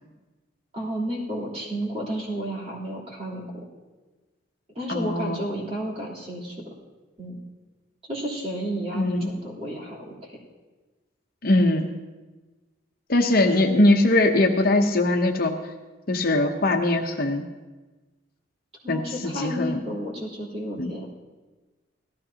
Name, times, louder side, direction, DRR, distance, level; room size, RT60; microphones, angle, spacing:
voice 1, 0.7-3.5 4.7-6.6 7.2-7.4 8.1-10.4 13.5-13.6 18.8-21.2, equal, 30° right, -4 dB, 3.5 m, -32 dB
voice 2, 4.9-5.4 8.9-9.3 11.4-11.9 13.1-15.5 16.1-17.4 18.9-19.8 20.8-20.9, left 2 dB, 50° left, 4 dB, 0.9 m, -21 dB
17.5 x 14.5 x 2.9 m, 1.2 s
head